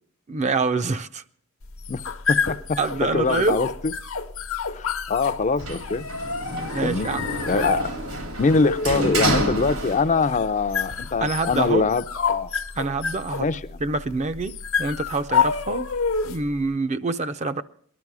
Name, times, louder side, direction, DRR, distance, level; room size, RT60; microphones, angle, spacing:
voice 1, 0.3-1.2 2.8-3.6 6.7-7.3 7.5-7.7 11.2-11.9 12.8-13.5 13.8-15.9 16.3-17.6, right 3 dB, 35° right, 0.5 m, -26 dB
sound 1, 1.6-16.5, left 6 dB, 70° left, 0.9 m, -29 dB
voice 2, 2.3-2.8 3.1-3.9 4.7-6.0 6.5-7.1 7.5-7.9 8.4-12.5 13.4-13.6, left 4 dB, 35° left, 0.5 m, -23 dB
Sliding door, 5.6-10.4 10.7-11.7, right 1 dB, 85° right, 2.6 m, -28 dB
19.0 x 12.0 x 4.8 m
head